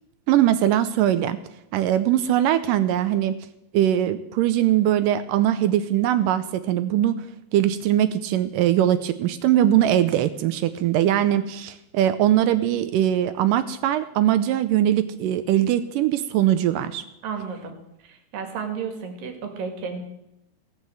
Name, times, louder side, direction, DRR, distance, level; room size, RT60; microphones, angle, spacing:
voice 1, 0.3-1.4 1.7-3.4 3.7-7.2 7.5-17.0, right 12 dB, 80° right, 12 dB, 2.0 m, -21 dB
voice 2, 17.2-17.7 18.0-20.0, right 6 dB, 65° right, 5 dB, 3.4 m, -32 dB
17.0 x 7.4 x 7.8 m, 0.85 s
omnidirectional pair, 4.4 m